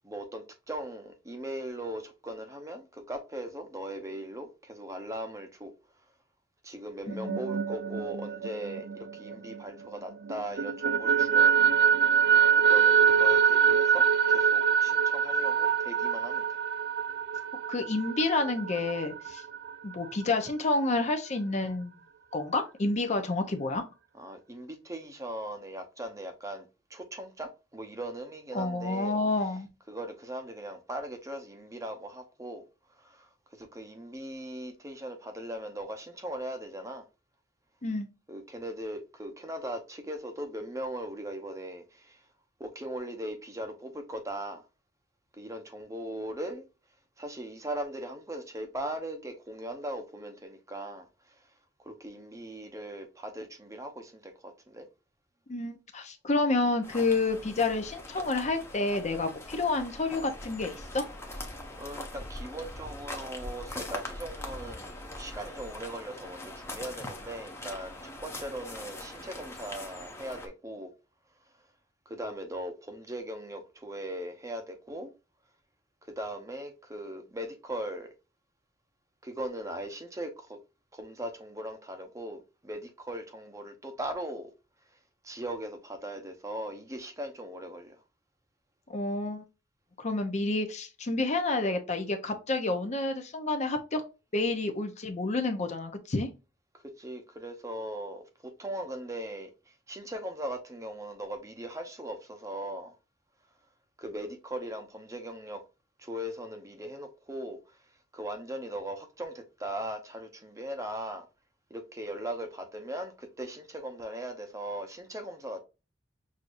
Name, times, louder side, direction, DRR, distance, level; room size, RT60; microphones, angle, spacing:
voice 1, 0.0-5.7 6.6-11.5 12.7-16.4 24.2-29.2 29.9-32.6 33.0-33.3 33.6-37.0 38.3-42.2 42.6-44.6 45.4-46.7 47.2-51.1 51.8-54.9 61.8-70.9 72.1-75.1 76.0-78.1 79.2-80.6 80.9-84.5 85.2-88.0 96.7-98.3 98.6-99.5 99.9-102.9 104.0-105.6 106.0-107.6 108.1-111.2 111.7-115.6, right 1 dB, 15° right, 0.8 m, -39 dB
voice 2, 7.1-7.5 17.7-19.4 19.8-22.0 22.3-23.8 28.5-29.7 37.8-38.1 55.5-61.0 88.9-89.4 90.0-94.0 94.3-96.3, left 3 dB, 40° left, 0.7 m, -29 dB
sound 1, 7.1-9.9 10.3-19.7, right 7 dB, 60° right, 0.5 m, -25 dB
sound 2, 56.8-70.5, left 1 dB, 15° left, 0.9 m, -42 dB
6.3 x 2.7 x 2.5 m
head